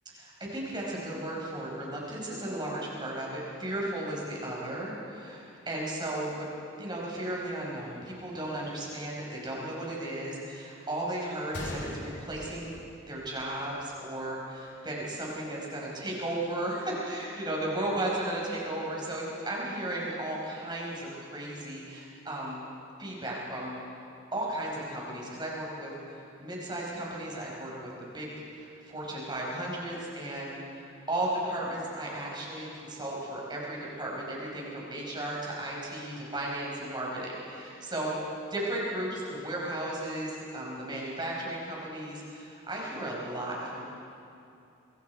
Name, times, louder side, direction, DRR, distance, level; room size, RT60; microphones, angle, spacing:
voice 1, 0.0-6.5 6.8-12.8 13.1-22.6 23.0-23.8 24.3-38.1 38.5-43.8, right 1 dB, 20° right, -3 dB, 5.1 m, -35 dB
Gunshot gunfire, 11.5-13.6 13.8-13.9 14.6-14.8, left 1 dB, 55° left, 2.9 m, -41 dB
26.0 x 23.5 x 4.7 m, 2.6 s
head